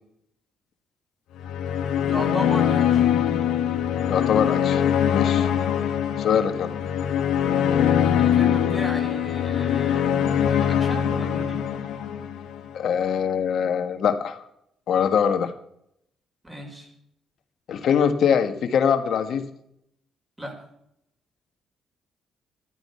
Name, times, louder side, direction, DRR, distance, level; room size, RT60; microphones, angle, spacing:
sound 1, 1.4-12.7, left 9 dB, 85° left, 1.8 m, -22 dB
voice 1, 2.0-3.0 8.2-11.6 16.4-16.9 20.4-20.6, equal, 10° right, 2 dB, 5.0 m, -35 dB
voice 2, 4.1-4.8 5.1-5.5 6.2-6.7 12.7-14.4 14.9-15.5 17.7-19.4, left 7 dB, 65° left, 8 dB, 1.5 m, -23 dB
13.0 x 11.5 x 5.7 m, 0.74 s
cardioid pair, 90°, 0 cm